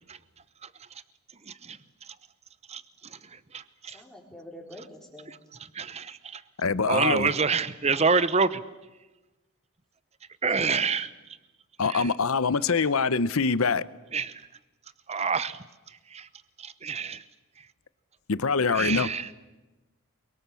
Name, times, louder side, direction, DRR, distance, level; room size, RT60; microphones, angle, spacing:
voice 1, 0.6-1.0 1.4-2.2 2.7-4.0 5.3-6.4 6.9-8.6 10.4-11.1 11.8-12.1 14.1-14.5 15.1-16.3 16.6-17.3 17.6-17.7 18.7-19.3, right 4 dB, 30° right, 0.9 m, -28 dB
voice 2, 3.8-5.3 10.5-10.7, left 1 dB, ahead, 4.8 m, -46 dB
voice 3, 6.6-7.3 11.8-13.8 18.3-19.1, left 4 dB, 70° left, 0.8 m, -24 dB
28.5 x 22.5 x 7.1 m
head